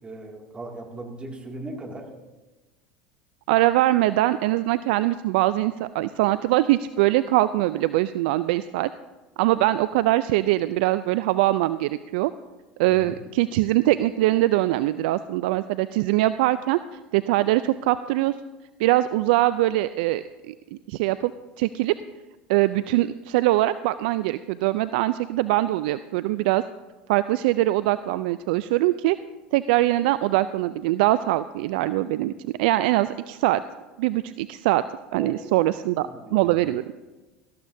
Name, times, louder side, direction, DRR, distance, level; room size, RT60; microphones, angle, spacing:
voice 1, 0.0-2.1 12.9-13.1 35.2-35.4 36.0-36.6, right 2 dB, 20° right, 2 dB, 2.3 m, -38 dB
voice 2, 3.5-8.9 9.4-12.3 12.8-16.8 17.1-18.3 18.8-21.3 21.6-21.9 22.5-26.6 27.1-29.2 29.5-33.6 34.0-34.8 35.1-36.8, right 16 dB, 70° right, 14 dB, 0.3 m, -22 dB
18.0 x 13.5 x 2.7 m, 1.2 s
hypercardioid pair, 80°, 5 cm